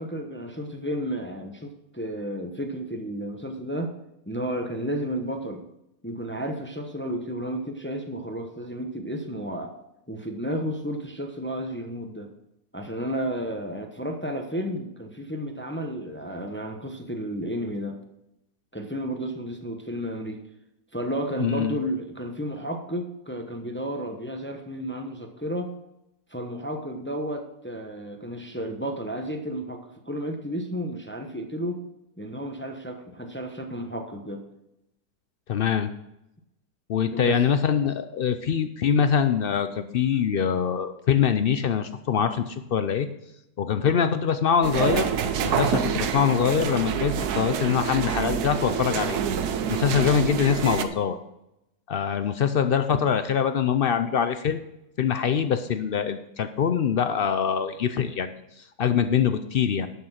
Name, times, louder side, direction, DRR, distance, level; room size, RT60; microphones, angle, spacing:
voice 1, 0.0-3.9 4.3-5.7 6.0-9.8 10.1-12.3 12.7-17.9 18.7-20.4 20.9-25.7 26.3-31.8 32.2-34.4 37.1-37.4 45.7-46.0, equal, 10° left, 4 dB, 0.7 m, -32 dB
voice 2, 21.4-21.7 35.5-35.9 36.9-43.1 43.6-45.1 45.4-49.2 49.7-51.2 51.9-54.6 55.0-59.9, left 7 dB, 75° left, 10 dB, 0.5 m, -24 dB
sound 1, 44.6-50.9, right 8 dB, 80° right, 1.3 m, -27 dB
11.0 x 6.6 x 5.8 m, 0.85 s
omnidirectional pair, 1.7 m